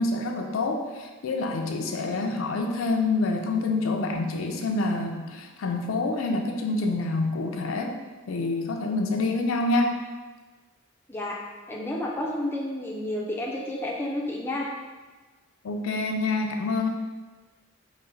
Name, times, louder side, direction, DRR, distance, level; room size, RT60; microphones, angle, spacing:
voice 1, 0.0-8.0 8.3-9.9 15.6-16.9, left 2 dB, 75° left, 3 dB, 0.4 m, -27 dB
voice 2, 11.7-14.7, left 1 dB, 10° left, -3 dB, 0.3 m, -30 dB
4.0 x 2.0 x 3.8 m, 1.3 s
head